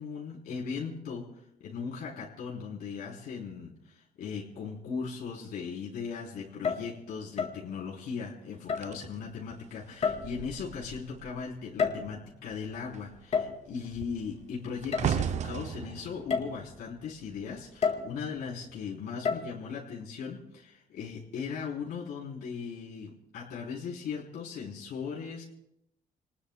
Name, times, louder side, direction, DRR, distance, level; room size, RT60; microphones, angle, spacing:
voice 1, 0.0-25.4, left 6 dB, 85° left, -4 dB, 3.7 m, -38 dB
sound 1, 6.5-7.0 7.4-7.7 8.7-9.0 10.0-10.5 11.6-12.3 13.3-13.7 14.9-15.1 15.6-15.7 16.3-16.6 17.8-18.2 19.2-19.5, left 5 dB, 45° left, 2.0 m, -30 dB
sound 2, 8.8-11.5 11.8-12.1 12.5-17.8 18.5-18.8, right 8 dB, 45° right, 0.6 m, -37 dB
30.0 x 20.0 x 2.2 m, 0.79 s
cardioid pair, 160°, 16 cm